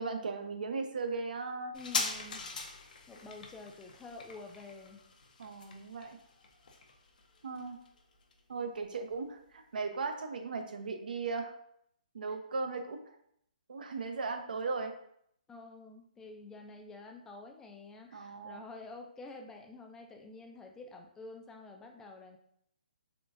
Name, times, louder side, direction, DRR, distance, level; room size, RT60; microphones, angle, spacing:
voice 1, 0.0-1.8 5.4-6.2 7.4-7.8 8.5-11.5 12.1-13.0 13.7-15.0 18.1-18.6, right 4 dB, 70° right, 6 dB, 0.5 m, -37 dB
sound 1, 1.7-8.8 9.1-9.2, left 4 dB, 65° left, 0.6 m, -41 dB
voice 2, 1.7-2.4 3.1-5.0 15.5-22.4, left 3 dB, 10° left, 2 dB, 0.3 m, -49 dB
3.6 x 2.5 x 2.5 m, 0.71 s
hypercardioid pair, 145°, 5 cm